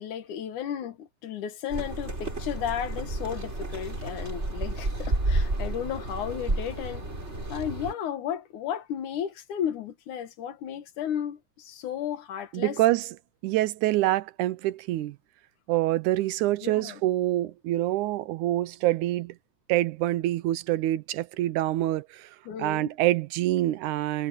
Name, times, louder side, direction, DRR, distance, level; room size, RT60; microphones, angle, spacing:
voice 1, 0.0-7.0 7.5-12.8 16.6-17.0 22.5-22.9, left 9 dB, 75° left, 2.9 m, -34 dB
sound 1, 1.7-7.9, right 2 dB, 20° right, 4.3 m, -31 dB
voice 2, 12.5-13.2 13.4-15.2 15.7-19.4 19.7-22.3 22.6-24.3, right 15 dB, 80° right, 2.1 m, -26 dB
omnidirectional pair, 3.5 m